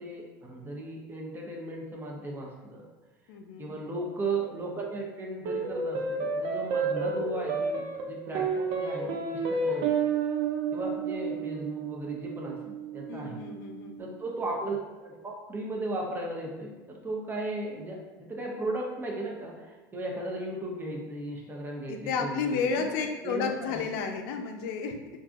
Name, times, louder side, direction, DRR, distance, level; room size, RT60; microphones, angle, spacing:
voice 1, 0.0-2.9 3.6-9.9 10.7-13.4 14.0-23.0 23.2-23.8, right 2 dB, 20° right, -1 dB, 0.8 m, -36 dB
voice 2, 3.3-3.7 13.1-14.0 21.9-25.0, left 5 dB, 65° left, 4 dB, 0.5 m, -32 dB
sound 1, 5.4-14.1, right 5 dB, 60° right, 0.5 m, -31 dB
4.5 x 2.6 x 2.5 m, 1.2 s
hypercardioid pair, 90°, 11 cm